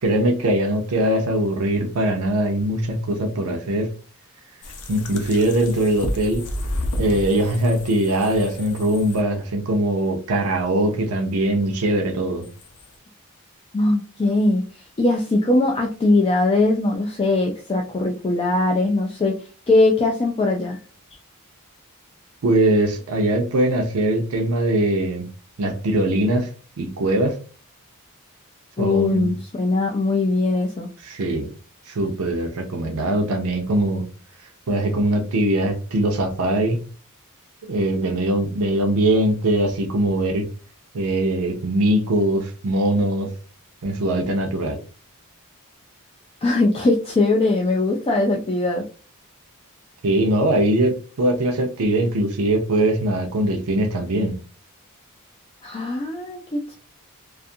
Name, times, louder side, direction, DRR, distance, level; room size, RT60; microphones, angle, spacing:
voice 1, 0.0-3.9 4.9-6.5 7.0-12.5 22.4-25.3 25.6-26.5 26.8-27.4 28.8-29.3 31.0-31.5 31.9-34.1 34.7-36.9 37.7-40.5 40.9-43.3 43.8-44.8 50.0-54.4, right 1 dB, 70° right, 3 dB, 0.5 m, -21 dB
Water sounds, 4.6-9.2 12.4-13.0, left 1 dB, 75° left, 0.6 m, -31 dB
voice 2, 13.7-19.4 19.7-20.8 28.8-30.9 46.4-48.9 55.6-56.7, left 2 dB, 25° left, 1 dB, 0.3 m, -20 dB
2.5 x 2.4 x 2.6 m, 0.36 s
head